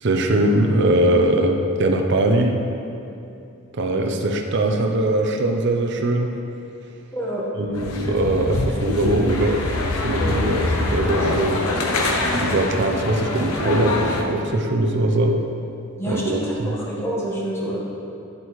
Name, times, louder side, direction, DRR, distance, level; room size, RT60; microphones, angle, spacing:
voice 1, 0.0-2.6 3.7-6.3 7.6-9.6 10.0-11.7 12.3-15.4 16.1-16.7, right 1 dB, 55° right, 3 dB, 0.7 m, -21 dB
voice 2, 7.1-7.5 16.0-17.8, equal, 10° left, -5 dB, 1.3 m, -27 dB
sound 1, 7.7-14.2, left 2 dB, 85° left, 0.8 m, -24 dB
10.0 x 7.8 x 3.2 m, 2.7 s
head